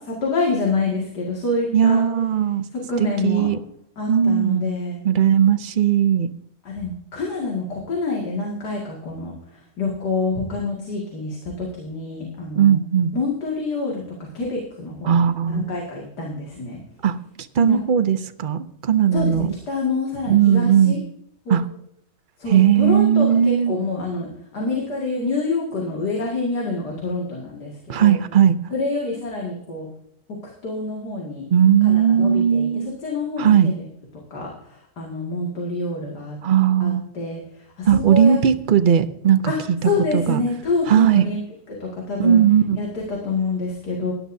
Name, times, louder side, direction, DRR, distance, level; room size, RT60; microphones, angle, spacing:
voice 1, 0.2-2.0 2.9-3.5 4.0-5.0 6.6-9.3 9.8-12.8 13.1-14.0 14.3-16.8 17.6-17.8 19.1-19.4 19.7-21.0 21.5-21.6 22.4-28.2 28.7-29.9 30.6-31.4 31.8-32.7 33.0-33.8 34.3-34.5 35.0-36.4 36.8-37.4 37.8-38.4 39.5-39.6 39.8-41.4 41.8-42.4 42.8-44.1, left 3 dB, 85° left, -2 dB, 2.8 m, -27 dB
voice 2, 1.7-2.6 3.0-3.6 4.1-4.7 5.0-6.3 12.6-13.1 15.0-15.7 17.0-17.2 17.6-19.5 20.3-21.0 21.5-21.7 22.5-23.8 27.9-28.6 31.5-32.9 33.4-33.7 36.4-37.0 37.9-39.5 39.8-40.4 40.9-41.2 42.2-42.8, right 8 dB, 60° right, 11 dB, 0.5 m, -17 dB
17.5 x 11.5 x 2.7 m, 0.73 s
omnidirectional pair, 1.7 m